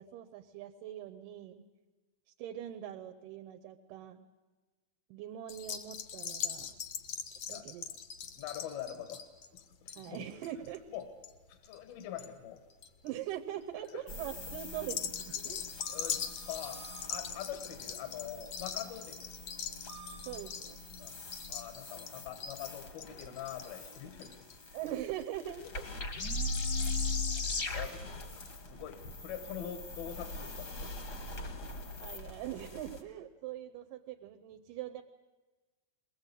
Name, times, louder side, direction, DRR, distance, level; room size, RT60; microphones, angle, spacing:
voice 1, 0.0-1.7 2.4-4.2 5.1-6.8 7.5-7.9 10.0-11.0 13.0-15.7 20.2-20.8 24.7-25.9 26.2-26.3 32.0-35.0, right 12 dB, 75° right, 7 dB, 2.3 m, -42 dB
sound 1, 5.5-12.3 12.6-13.1 13.6-13.9 14.8-24.6 24.9-25.0 25.2-25.3, left 8 dB, 70° left, 1.5 m, -41 dB
voice 2, 8.4-9.2 9.5-10.2 10.9-11.1 11.5-12.6 13.9-14.0 15.9-16.8 17.1-19.3 21.0-21.2 21.5-24.8 25.4-25.9 27.7-31.1, left 10 dB, 85° left, 8 dB, 3.1 m, -44 dB
sound 2, 14.1-33.0, left 3 dB, 50° left, 1.3 m, -41 dB
21.5 x 18.5 x 8.2 m, 1.3 s
omnidirectional pair, 4.2 m